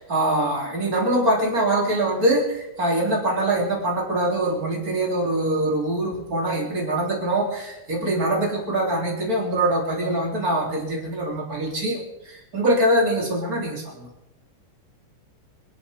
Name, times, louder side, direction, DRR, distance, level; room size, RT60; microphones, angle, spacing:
voice 1, 0.0-14.1, right 1 dB, 20° right, 0 dB, 3.4 m, -23 dB
25.0 x 11.0 x 5.2 m, 0.91 s
omnidirectional pair, 5.4 m